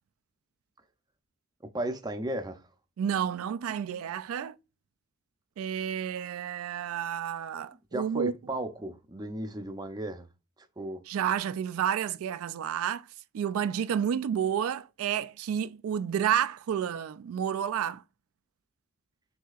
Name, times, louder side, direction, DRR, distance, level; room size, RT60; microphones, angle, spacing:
voice 1, 1.7-2.6 7.9-10.3 10.8-11.0, right 1 dB, 20° right, 0.5 m, -35 dB
voice 2, 3.0-4.5 5.6-8.3 11.1-13.1 13.3-18.0, right 9 dB, 85° right, 0.3 m, -30 dB
6.2 x 2.8 x 2.3 m
head